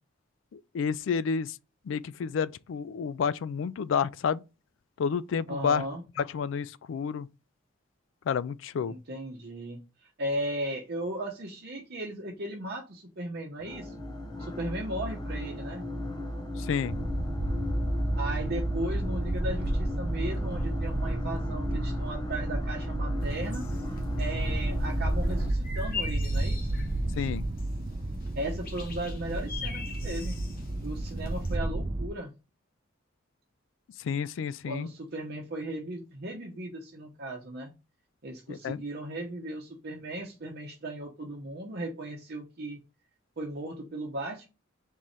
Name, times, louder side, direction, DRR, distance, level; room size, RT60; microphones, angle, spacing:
voice 1, 0.5-1.6 1.9-4.4 5.0-5.9 6.2-7.3 8.3-8.9 16.6-16.9 27.2-27.4 34.0-34.9 38.5-38.8, left 6 dB, 65° left, 0.3 m, -30 dB
voice 2, 5.5-6.0 8.9-14.0 14.4-15.8 18.2-23.6 24.2-26.8 28.3-30.4 30.8-32.3 34.7-37.7 38.2-42.8 43.4-44.5, right 1 dB, 50° right, 0.9 m, -36 dB
sound 1, 13.6-25.5, equal, 20° left, 0.7 m, -34 dB
sound 2, 16.9-32.1, right 1 dB, 30° right, 0.5 m, -32 dB
sound 3, 23.2-31.6, left 4 dB, 45° left, 1.0 m, -43 dB
3.7 x 3.1 x 4.1 m
head